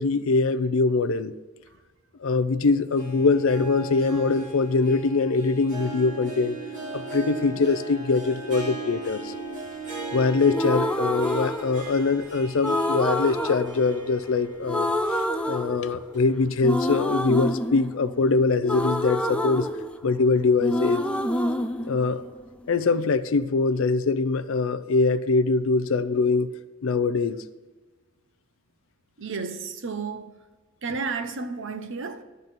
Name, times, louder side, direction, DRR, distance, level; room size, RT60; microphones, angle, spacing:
voice 1, 0.0-1.3 2.2-6.6 6.9-9.3 10.1-19.7 20.0-21.0 21.8-22.2 22.7-26.5 26.8-27.4, left 4 dB, 65° left, 0.5 m, -23 dB
Harp, 2.7-14.8 15.2-15.3 16.1-16.2, right 3 dB, 35° right, 2.2 m, -38 dB
sound 1, 10.5-12.2 12.6-14.4 14.7-16.2 16.6-20.3 20.6-22.7, left 1 dB, 5° left, 0.3 m, -27 dB
voice 2, 29.2-30.5 30.8-32.2, right 4 dB, 60° right, 0.7 m, -33 dB
12.0 x 4.1 x 7.4 m
head